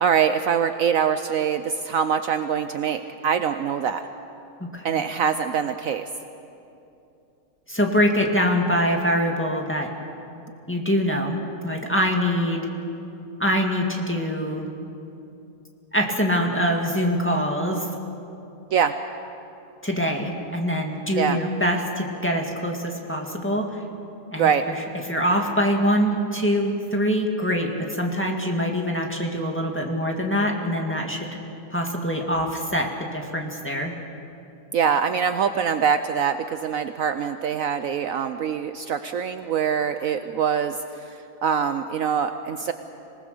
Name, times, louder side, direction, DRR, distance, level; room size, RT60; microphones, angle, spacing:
voice 1, 0.0-4.1 4.8-6.1 18.7-18.9 21.2-21.4 24.4-24.6 34.7-40.8 41.1-42.7, right 7 dB, 65° right, 9 dB, 1.0 m, -24 dB
voice 2, 7.7-9.9 10.7-11.4 11.6-12.7 13.4-14.7 15.9-17.9 19.8-23.8 24.3-24.7 25.1-31.3 31.7-33.9, equal, 5° left, 0 dB, 2.0 m, -24 dB
26.0 x 19.0 x 6.8 m, 2.7 s
omnidirectional pair, 1.7 m